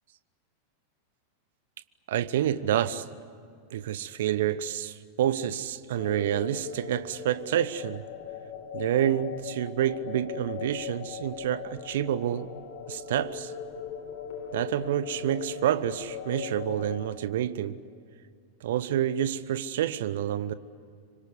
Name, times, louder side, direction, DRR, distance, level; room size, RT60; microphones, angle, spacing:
voice 1, 2.1-3.0 3.7-8.0 8.7-12.5 12.9-13.5 14.5-17.8 18.6-20.5, right 11 dB, 55° right, 1.1 m, -28 dB
sound 1, 5.9-17.1, left 8 dB, 45° left, 3.7 m, -39 dB
26.0 x 25.0 x 8.2 m
figure-of-eight pair, 90°, 0 cm